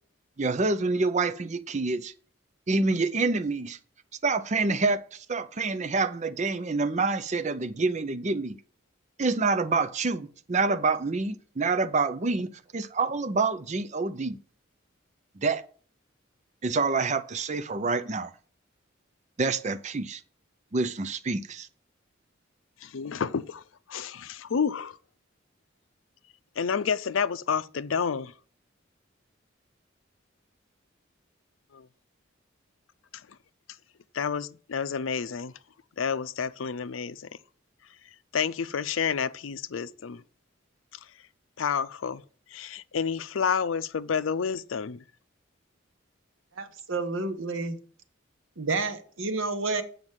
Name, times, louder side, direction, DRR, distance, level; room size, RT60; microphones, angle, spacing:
voice 1, 0.4-2.1 2.7-3.8 4.2-8.6 9.2-14.4 15.4-15.6 16.6-18.3 19.4-20.2 20.7-21.7, right 3 dB, 35° right, 0.6 m, -27 dB
voice 2, 22.8-23.6 23.9-25.0 26.6-28.3 31.7-31.9 33.1-33.4 34.1-35.5 36.0-37.3 38.3-40.2 41.6-42.2 42.5-45.0, left 6 dB, 80° left, 0.5 m, -29 dB
voice 3, 46.6-47.8 48.6-49.8, right 3 dB, 85° right, 1.3 m, -30 dB
8.0 x 5.1 x 7.3 m
head